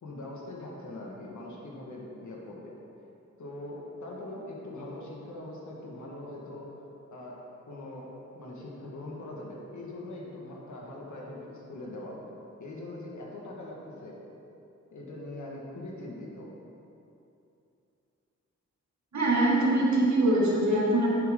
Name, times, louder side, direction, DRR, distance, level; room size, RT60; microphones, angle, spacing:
voice 1, 0.0-2.7 3.4-6.7 7.1-8.1 8.3-12.2 12.6-14.2 14.9-16.5, left 1 dB, 90° left, -3 dB, 1.7 m, -42 dB
voice 2, 19.1-21.1, right 1 dB, 70° right, -5 dB, 2.2 m, -23 dB
10.0 x 7.9 x 3.8 m, 2.8 s
cardioid pair, 70°, 29 cm